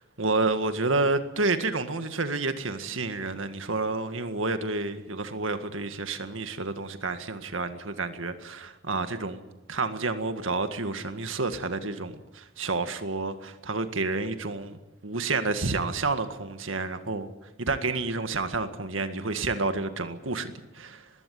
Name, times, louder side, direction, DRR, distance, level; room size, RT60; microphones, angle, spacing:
voice 1, 0.2-9.4 9.7-17.3 17.6-21.1, right 3 dB, 85° right, 1.9 m, -29 dB
21.0 x 16.5 x 9.5 m
head